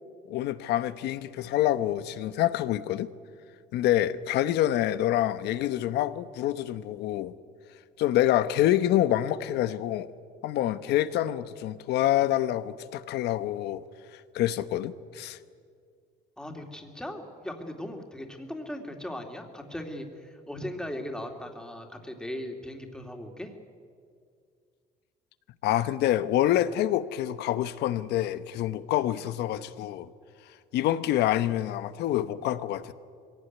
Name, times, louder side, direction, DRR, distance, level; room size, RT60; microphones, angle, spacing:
voice 1, 0.3-3.1 3.7-7.3 8.0-10.1 10.4-13.8 14.1-15.4 25.6-30.1 30.7-32.9, left 13 dB, 80° left, 13 dB, 1.0 m, -27 dB
voice 2, 16.4-23.5, left 1 dB, 5° left, 3 dB, 2.7 m, -38 dB
22.5 x 17.5 x 9.4 m, 2.2 s
cardioid pair, 110°, 17 cm